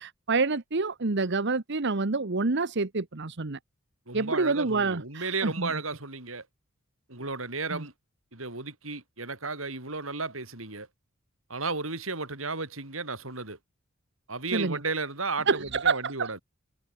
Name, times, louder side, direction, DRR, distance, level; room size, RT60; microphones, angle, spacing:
voice 1, 0.0-3.6 4.1-5.7 7.7-7.8 14.5-14.8 15.5-16.3, right 3 dB, 60° right, 1.2 m, -27 dB
voice 2, 4.1-6.4 7.1-7.9 8.3-10.9 11.5-13.6 14.3-16.4, right 3 dB, 80° right, 6.7 m, -34 dB
head